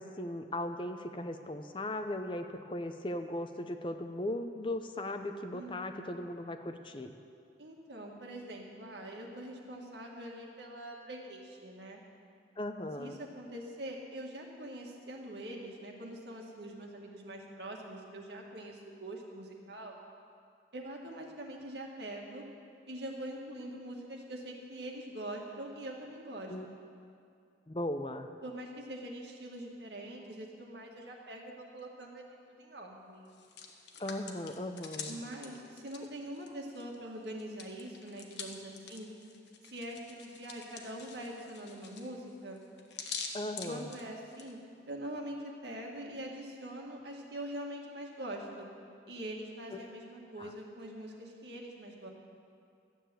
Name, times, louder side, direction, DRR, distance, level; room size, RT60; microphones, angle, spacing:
voice 1, 0.0-7.2 12.6-13.2 26.5-26.7 27.7-28.3 34.0-35.2 43.3-43.9 50.4-50.5, left 1 dB, 30° left, 7 dB, 0.6 m, -38 dB
voice 2, 5.5-6.1 7.6-12.0 13.0-19.9 20.7-22.4 22.9-26.8 28.4-33.3 35.1-39.1 39.7-42.6 43.7-44.6 44.9-48.7 49.1-52.1, right 1 dB, 75° right, 0 dB, 1.9 m, -44 dB
Hands, 33.3-37.0 37.2-44.5, left 6 dB, 80° left, 1.2 m, -46 dB
12.5 x 8.6 x 7.6 m, 2.4 s
head